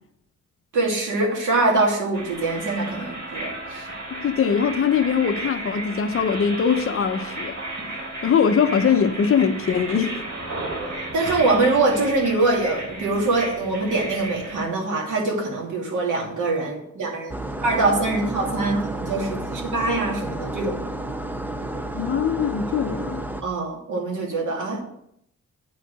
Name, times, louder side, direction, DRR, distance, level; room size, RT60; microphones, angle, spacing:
voice 1, 0.7-3.9 11.1-20.9 23.4-24.8, right 2 dB, 80° right, 2.5 m, -23 dB
sound 1, 2.1-14.6, right 2 dB, 60° right, 3.7 m, -34 dB
voice 2, 4.1-7.6 8.2-10.3 21.9-23.2, left 7 dB, 45° left, 0.7 m, -22 dB
sound 2, 17.3-23.4, right 1 dB, 5° right, 0.4 m, -31 dB
8.9 x 5.0 x 6.2 m
wide cardioid pair, 165°, 31 cm